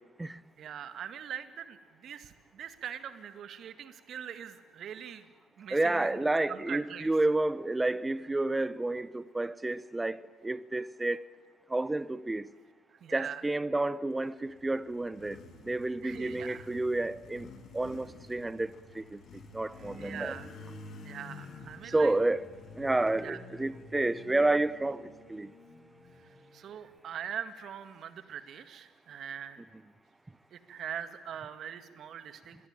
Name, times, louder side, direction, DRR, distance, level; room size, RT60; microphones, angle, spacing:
voice 1, 0.6-5.3 5.6-7.1 13.0-13.4 16.0-16.7 19.9-20.5 21.0-22.1 23.2-23.4 26.5-29.6 30.5-32.6, right 9 dB, 55° right, 2.0 m, -42 dB
voice 2, 5.7-11.3 11.7-12.5 13.1-15.4 15.6-17.5 17.7-19.2 19.5-20.4 21.9-22.4 22.8-25.5, right 2 dB, 15° right, 1.0 m, -30 dB
Motorcycle, 14.3-27.0, left 3 dB, 55° left, 3.1 m, -50 dB
25.5 x 21.5 x 9.0 m
hypercardioid pair, 60°, 0 cm